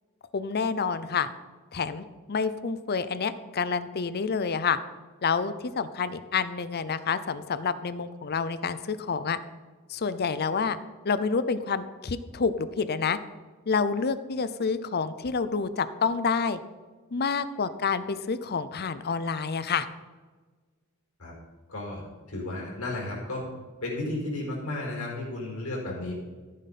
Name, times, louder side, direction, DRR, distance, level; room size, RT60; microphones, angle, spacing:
voice 1, 0.3-1.3 1.7-4.8 5.2-9.4 9.9-10.8 11.0-13.2 13.7-16.6 17.1-19.9, left 5 dB, 45° left, 13 dB, 0.6 m, -28 dB
voice 2, 21.7-22.0 22.3-23.5 23.8-26.1, left 2 dB, 75° left, -2 dB, 4.6 m, -33 dB
14.5 x 9.4 x 4.2 m, 1.4 s
head